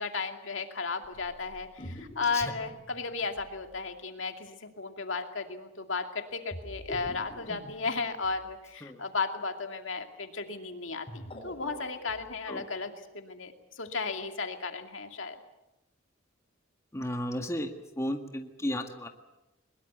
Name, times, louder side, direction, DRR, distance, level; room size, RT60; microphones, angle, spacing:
voice 1, 0.0-15.4, left 4 dB, 70° left, 5 dB, 2.5 m, -35 dB
sound 1, 1.0-3.9 6.5-8.5 10.9-12.3, equal, 30° left, 4.0 m, -45 dB
voice 2, 16.9-17.7 18.0-19.1, left 1 dB, 15° left, 4 dB, 1.9 m, -33 dB
22.0 x 22.0 x 8.1 m, 0.95 s
head